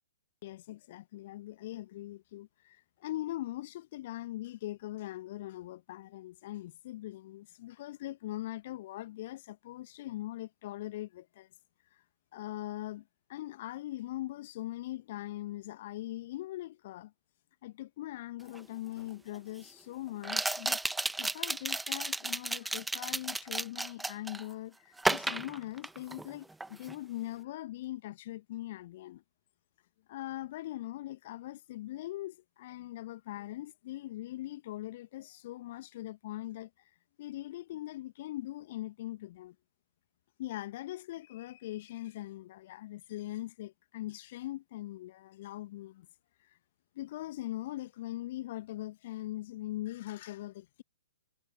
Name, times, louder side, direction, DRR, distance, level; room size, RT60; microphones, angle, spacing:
voice 1, 0.4-11.5 12.3-17.1 17.6-20.8 21.2-29.2 30.1-36.7 37.2-39.5 40.4-46.1 46.9-50.8, left 15 dB, 45° left, 1.3 m, -41 dB
sound 1, 18.5-18.6 20.2-24.4 25.0-26.3 26.6-26.9, right 2 dB, 5° right, 1.4 m, -33 dB
figure-of-eight pair, 115°, 0 cm